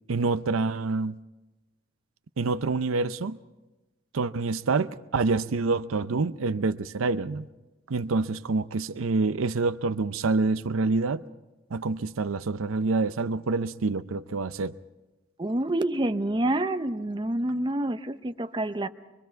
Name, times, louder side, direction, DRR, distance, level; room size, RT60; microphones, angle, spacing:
voice 1, 0.1-1.2 2.4-3.4 4.1-7.5 7.9-11.2 11.7-14.8, right 3 dB, 80° right, 0.6 m, -27 dB
voice 2, 15.4-18.9, right 1 dB, 25° right, 0.7 m, -27 dB
25.0 x 23.5 x 4.6 m
head